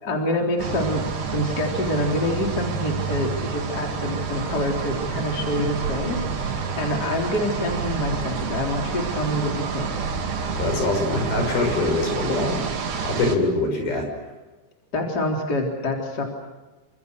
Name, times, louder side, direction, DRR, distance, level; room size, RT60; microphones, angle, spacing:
voice 1, 0.0-10.1 14.9-16.2, left 1 dB, 25° left, 1 dB, 3.9 m, -26 dB
sound 1, 0.6-13.4, right 5 dB, 70° right, 4.7 m, -28 dB
voice 2, 10.5-12.6 13.0-14.1, left 2 dB, 65° left, 4 dB, 8.1 m, -23 dB
29.0 x 26.0 x 6.6 m, 1.2 s
omnidirectional pair, 4.7 m